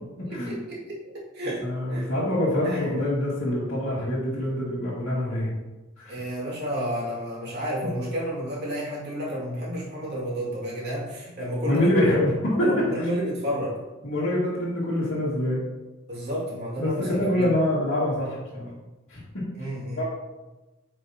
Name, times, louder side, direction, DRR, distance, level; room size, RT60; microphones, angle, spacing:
voice 1, 0.2-1.6 1.9-2.1 2.6-3.0 6.1-12.1 12.6-13.8 16.1-17.5 19.5-20.0, equal, 50° right, -5 dB, 2.2 m, -31 dB
voice 2, 1.6-5.5 6.0-6.2 11.7-12.7 13.0-13.1 14.0-15.6 16.8-18.7 19.1-19.2 19.6-19.7 20.0-20.1, left 1 dB, 60° left, -9 dB, 1.8 m, -25 dB
8.7 x 4.9 x 2.8 m, 1.1 s
head